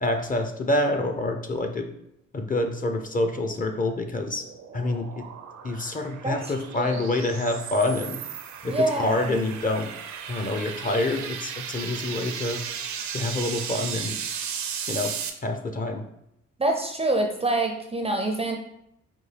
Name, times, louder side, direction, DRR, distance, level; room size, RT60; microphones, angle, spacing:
voice 1, 0.0-1.9 2.3-4.4 4.7-5.2 5.6-8.2 8.6-9.9 10.3-12.6 13.1-14.2 14.9-15.1 15.4-16.0, left 2 dB, 25° left, 5 dB, 0.6 m, -27 dB
sound 1, 4.0-15.3, right 7 dB, 70° right, 0.6 m, -36 dB
voice 2, 6.2-7.1 8.7-9.3 16.6-18.6, right 2 dB, 20° right, 4 dB, 0.5 m, -26 dB
5.2 x 2.3 x 3.2 m, 0.78 s
cardioid pair, 90°, 30 cm